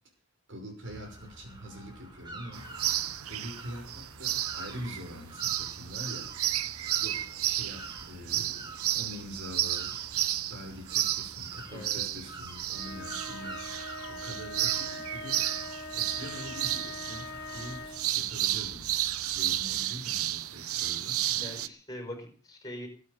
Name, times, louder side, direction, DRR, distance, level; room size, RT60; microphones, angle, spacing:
voice 1, 0.5-2.7 3.3-6.6 7.0-8.6 8.9-10.2 10.5-15.5 16.0-21.2, equal, 55° right, 3 dB, 6.0 m, -44 dB
sound 1, 0.8-19.9, right 2 dB, 20° right, 3.9 m, -48 dB
sound 2, 2.5-21.7, right 13 dB, 80° right, 0.8 m, -32 dB
voice 2, 11.7-12.1 21.3-22.9, left 1 dB, 15° left, 5 dB, 5.0 m, -42 dB
sound 3, 12.7-18.1, left 2 dB, 55° left, 2.8 m, -42 dB
20.5 x 9.3 x 6.8 m, 0.42 s
head